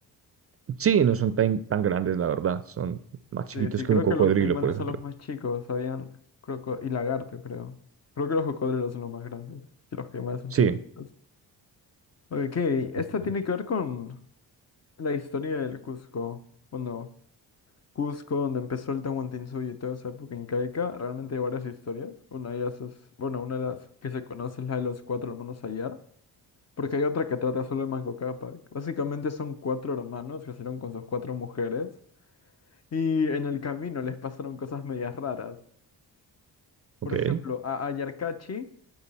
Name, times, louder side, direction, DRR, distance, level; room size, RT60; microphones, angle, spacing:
voice 1, 0.7-3.0 3.3-4.8 10.5-10.8 37.1-37.4, right 8 dB, 35° right, 13 dB, 0.4 m, -24 dB
voice 2, 3.5-6.1 6.5-7.8 8.2-9.6 9.9-10.7 12.3-14.2 15.0-16.4 16.7-17.1 18.0-22.9 23.2-26.0 26.8-31.9 32.9-35.6 37.0-38.7, left 5 dB, 40° left, 10 dB, 0.7 m, -31 dB
7.0 x 4.9 x 5.4 m, 0.64 s
cardioid pair, 80°, 40 cm